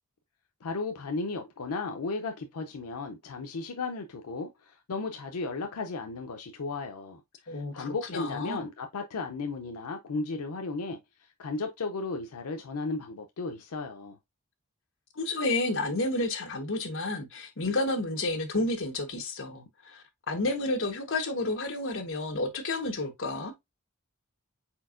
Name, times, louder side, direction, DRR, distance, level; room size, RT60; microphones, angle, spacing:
voice 1, 0.6-14.2, left 3 dB, 85° left, 0.5 m, -35 dB
voice 2, 7.5-8.6 15.2-23.5, left 2 dB, 60° left, 1.1 m, -31 dB
4.4 x 4.2 x 2.5 m
head